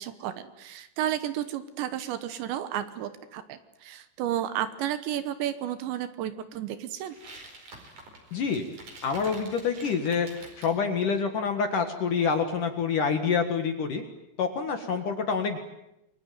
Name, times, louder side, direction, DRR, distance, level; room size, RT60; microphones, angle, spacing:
voice 1, 0.0-7.2, right 11 dB, 75° right, 12 dB, 3.2 m, -32 dB
sound 1, 7.0-10.8, right 2 dB, 40° right, 6.0 m, -47 dB
voice 2, 8.3-8.7 9.0-14.0 14.4-15.6, left 5 dB, 55° left, 6 dB, 2.5 m, -27 dB
29.0 x 22.0 x 9.2 m, 0.87 s
omnidirectional pair, 5.6 m